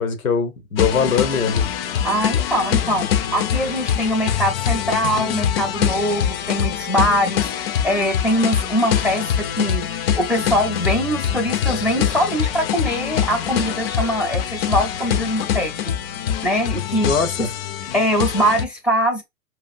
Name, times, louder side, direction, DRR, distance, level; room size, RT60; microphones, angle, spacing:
voice 1, 0.0-1.7 17.0-17.5, left 5 dB, 85° left, 0.9 m, -21 dB
sound 1, 0.8-18.6, left 9 dB, 45° left, 0.4 m, -24 dB
voice 2, 2.0-16.0 16.4-17.1 17.4-17.5 17.9-19.2, equal, 5° right, 0.5 m, -22 dB
4.9 x 2.0 x 2.5 m
hypercardioid pair, 105°, 41 cm